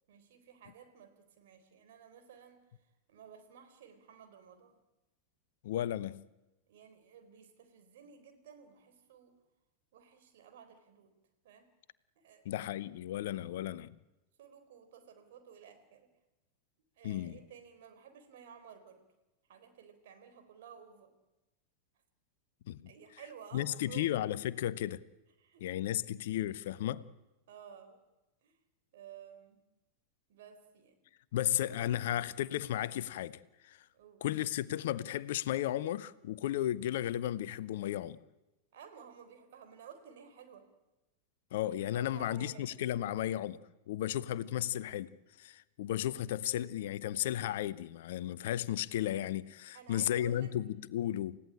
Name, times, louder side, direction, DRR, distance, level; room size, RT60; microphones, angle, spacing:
voice 1, 0.1-2.7 3.1-4.8 6.7-9.4 9.9-11.1 11.4-11.7 12.2-12.4 13.4-13.6 14.4-16.1 17.0-19.0 19.5-21.1 22.9-24.2 25.4-26.1 27.5-28.0 28.4-28.6 28.9-29.6 30.3-31.1 33.9-34.2 38.7-40.7 41.9-42.8 49.7-50.5, right 7 dB, 55° right, 4.0 m, -54 dB
voice 2, 5.6-6.3 12.4-13.9 17.0-17.4 22.7-22.9 23.5-25.0 25.6-27.1 31.3-33.8 34.2-38.2 41.5-43.6 43.9-51.4, left 12 dB, 55° left, 0.8 m, -34 dB
29.0 x 16.0 x 8.9 m
figure-of-eight pair, 90°, 0 cm